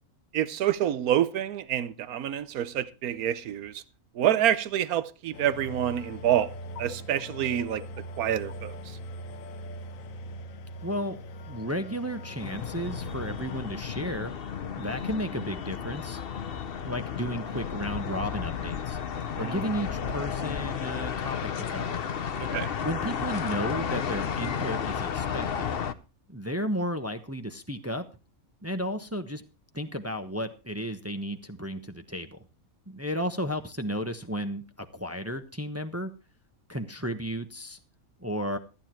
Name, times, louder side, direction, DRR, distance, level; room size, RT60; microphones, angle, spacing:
voice 1, 0.3-3.8 4.1-6.5 6.8-7.8 8.2-9.0 19.4-19.6 22.4-22.7, right 11 dB, 90° right, 1.3 m, -27 dB
sound 1, 5.3-13.6, equal, 70° left, 1.2 m, -41 dB
voice 2, 10.8-11.2 11.5-14.3 14.8-16.2 16.8-19.0 19.4-21.4 21.7-22.0 22.8-25.7 26.3-28.0 28.6-29.4 29.7-32.4 32.9-36.1 36.7-37.8 38.2-38.6, equal, 10° right, 0.8 m, -33 dB
sound 2, 12.4-25.9, left 7 dB, 50° left, 0.9 m, -33 dB
14.0 x 10.0 x 4.4 m
omnidirectional pair, 1.5 m